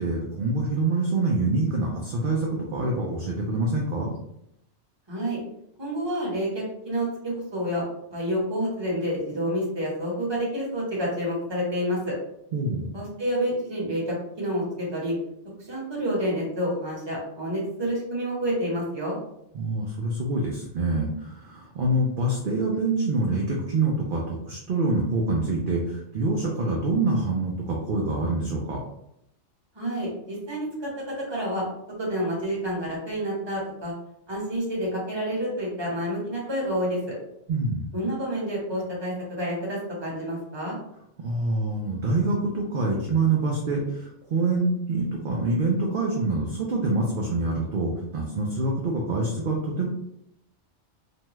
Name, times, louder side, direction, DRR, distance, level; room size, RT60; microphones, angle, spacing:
voice 1, 0.0-4.1 12.5-12.9 19.5-28.8 37.5-37.9 41.2-49.9, right 2 dB, 60° right, -1 dB, 0.6 m, -26 dB
voice 2, 5.1-5.4 5.8-7.8 8.1-12.1 12.9-15.1 15.6-19.2 29.7-31.7 32.0-33.9 34.3-37.1 37.9-40.8, equal, 25° right, -4 dB, 0.9 m, -29 dB
2.7 x 2.2 x 3.0 m, 0.77 s
omnidirectional pair, 1.2 m